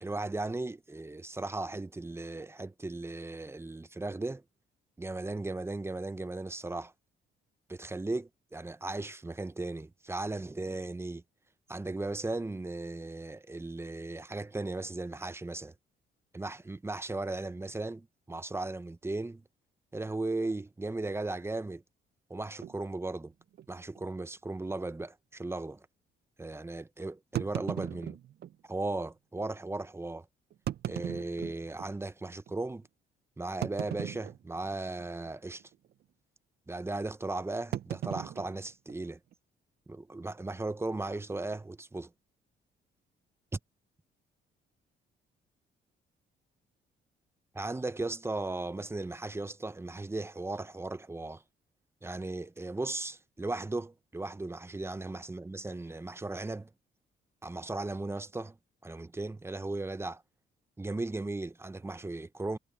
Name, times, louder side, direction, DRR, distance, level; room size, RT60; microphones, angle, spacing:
voice 1, 0.0-4.4 5.0-6.9 7.7-11.2 11.7-15.7 16.3-19.4 19.9-21.8 22.3-23.3 23.7-25.9 26.4-28.2 28.6-30.3 30.8-32.9 33.4-35.6 36.7-39.2 39.9-42.1 43.5-43.6 47.5-51.4 52.0-56.7 57.4-58.6 58.8-60.2 60.8-62.6, right 2 dB, 10° right, 0.7 m, -36 dB
sound 1, 22.6-22.8 23.5-23.7 24.0-24.1 24.7-24.8 27.3-28.6 29.4-29.5 30.5-31.9 32.5-32.6 33.6-34.7 35.0-35.3 35.6-35.9 37.7-39.3, right 11 dB, 55° right, 0.5 m, -38 dB
cardioid pair, 90°, 20 cm